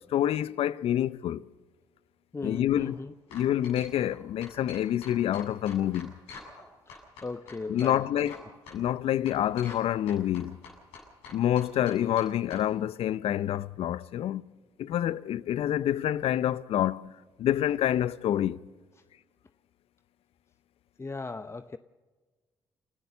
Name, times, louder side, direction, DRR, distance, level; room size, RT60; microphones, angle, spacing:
voice 1, 0.0-1.4 2.4-3.0 3.3-6.1 7.7-8.4 8.7-10.6 11.3-14.4 14.8-17.1 17.4-18.6, left 11 dB, 70° left, 0.6 m, -27 dB
voice 2, 2.3-3.1 6.9-8.3 21.0-21.8, left 3 dB, 25° left, 0.7 m, -38 dB
sound 1, 2.5-2.8 3.3-4.2 4.4-6.6 6.9-8.4 8.7-8.8 9.3-9.8 10.1-12.6, left 4 dB, 85° left, 8.0 m, -46 dB
29.5 x 13.5 x 6.8 m
hypercardioid pair, 50°, 10 cm